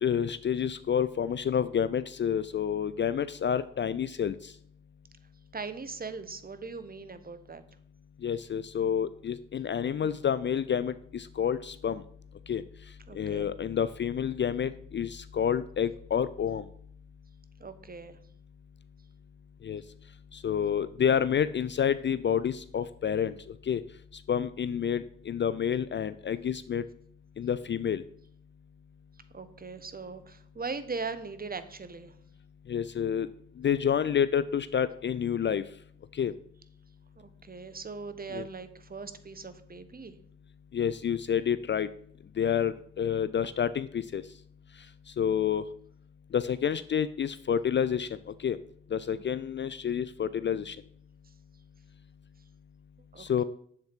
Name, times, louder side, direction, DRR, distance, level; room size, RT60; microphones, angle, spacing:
voice 1, 0.0-4.5 8.2-12.0 12.5-12.6 13.1-16.6 19.6-19.8 20.3-23.3 23.7-23.8 24.3-26.8 27.4-28.0 32.7-33.3 33.6-35.6 36.1-36.3 38.3-38.4 40.7-41.9 42.4-44.2 45.2-45.6 46.3-48.1 48.4-48.6 48.9-50.8 53.2-53.4, left 8 dB, 35° left, 15 dB, 0.4 m, -29 dB
voice 2, 5.5-7.6 13.1-13.5 17.6-18.2 29.3-32.1 37.2-40.1 49.1-49.2 53.1-53.4, right 4 dB, 30° right, 12 dB, 1.0 m, -40 dB
7.4 x 7.3 x 4.5 m, 0.63 s
hypercardioid pair, 50°, 32 cm